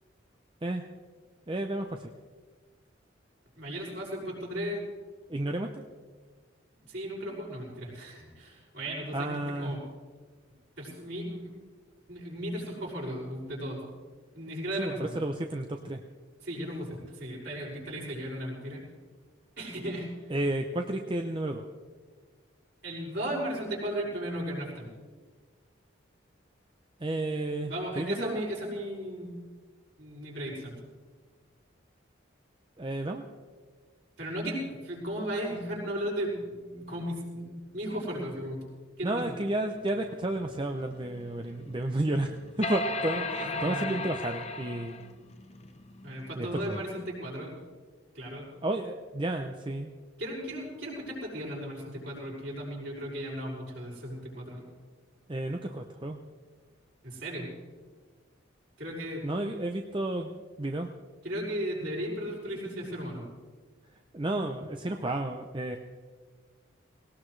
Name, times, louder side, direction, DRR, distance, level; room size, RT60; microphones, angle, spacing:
voice 1, 1.5-2.1 5.3-5.8 9.1-9.7 14.8-16.0 20.3-21.7 27.0-28.4 32.8-33.2 39.0-45.0 46.4-46.8 48.6-49.9 55.3-56.2 59.2-60.9 64.1-65.8, right 1 dB, 25° right, 4 dB, 0.7 m, -32 dB
voice 2, 3.6-4.8 6.8-9.8 10.8-11.5 12.1-13.8 14.3-15.2 16.4-18.8 19.6-20.1 22.8-24.9 27.7-29.4 30.0-30.8 34.2-38.6 39.0-39.3 43.1-44.0 46.0-47.6 48.1-48.5 50.2-54.6 57.0-57.5 58.8-59.5 61.2-63.3, equal, 60° right, -4 dB, 6.0 m, -36 dB
sound 1, 39.9-46.4, left 2 dB, 35° left, 0.8 m, -37 dB
19.5 x 18.5 x 3.3 m, 1.5 s
head